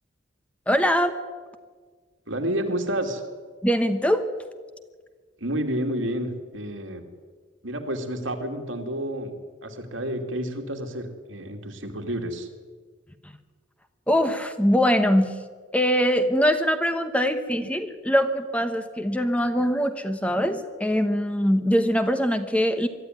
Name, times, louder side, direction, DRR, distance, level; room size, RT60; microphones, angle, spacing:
voice 1, 0.7-1.2 3.6-4.3 14.1-15.4 15.7-22.9, equal, 5° left, 8 dB, 1.1 m, -22 dB
voice 2, 2.3-3.2 5.4-7.0 7.6-9.4 9.6-12.5, right 1 dB, 85° right, 3 dB, 2.7 m, -30 dB
22.5 x 12.5 x 9.6 m, 1.5 s
head